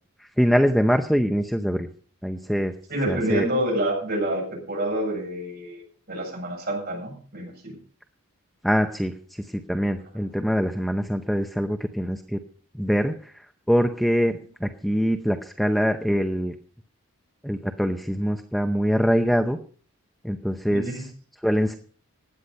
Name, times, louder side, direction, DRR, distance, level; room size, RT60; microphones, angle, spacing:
voice 1, 0.2-1.9 2.2-2.7 3.1-3.5 8.6-9.1 9.5-12.4 12.7-16.5 17.4-19.6 20.2-21.1 21.4-21.8, equal, ahead, 6 dB, 0.6 m, -24 dB
voice 2, 2.9-5.8 6.1-7.7 20.7-21.0, right 1 dB, 45° right, -1 dB, 7.9 m, -28 dB
16.5 x 10.0 x 5.4 m, 0.42 s
head